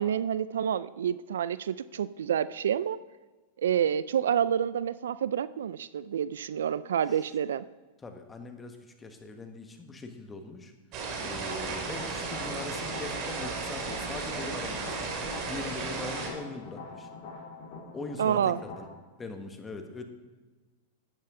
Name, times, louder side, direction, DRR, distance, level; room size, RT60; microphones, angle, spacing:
voice 1, 0.0-3.0 3.6-7.7 18.2-18.6, right 9 dB, 80° right, 18 dB, 0.3 m, -28 dB
voice 2, 8.0-10.7 11.2-17.1 17.9-18.9 19.2-20.0, left 3 dB, 15° left, 6 dB, 1.4 m, -41 dB
sound 1, 10.9-16.3, right 4 dB, 50° right, 2.4 m, -35 dB
sound 2, 11.4-18.8, left 4 dB, 55° left, 3.6 m, -45 dB
12.0 x 8.8 x 3.8 m, 1.3 s
hypercardioid pair, 110°, 0 cm